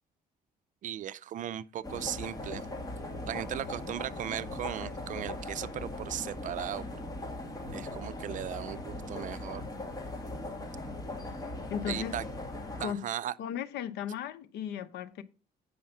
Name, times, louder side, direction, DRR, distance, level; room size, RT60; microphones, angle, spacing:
voice 1, 0.8-2.6 3.3-6.9 7.7-9.7 11.9-12.2 12.8-13.3, right 11 dB, 50° right, 0.5 m, -37 dB
sound 1, 1.8-12.8, left 2 dB, 20° left, 2.2 m, -39 dB
voice 2, 11.7-12.1 12.8-13.0 13.4-15.2, left 9 dB, 80° left, 0.9 m, -36 dB
8.8 x 5.6 x 5.5 m
cardioid pair, 110°, 17 cm